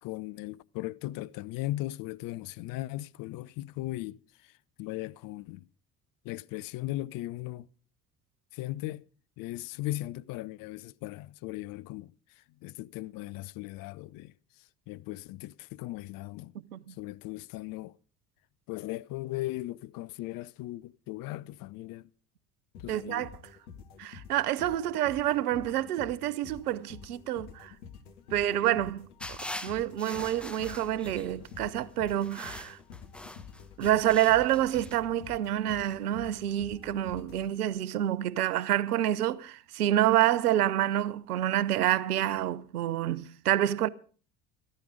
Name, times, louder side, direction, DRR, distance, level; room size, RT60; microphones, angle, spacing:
voice 1, 0.0-4.5 4.8-5.7 6.2-7.7 8.5-9.1 9.4-16.5 17.0-17.9 18.7-22.1 22.8-23.3, left 17 dB, 50° left, 0.6 m, -38 dB
sound 1, 22.7-38.0, left 6 dB, 70° left, 1.7 m, -49 dB
voice 2, 22.9-23.3 24.0-27.7 28.3-32.8 33.8-43.9, right 12 dB, 75° right, 0.7 m, -28 dB
sound 2, 29.2-31.5 32.1-35.0, left 1 dB, ahead, 0.8 m, -43 dB
13.0 x 13.0 x 5.0 m
figure-of-eight pair, 55°, 46 cm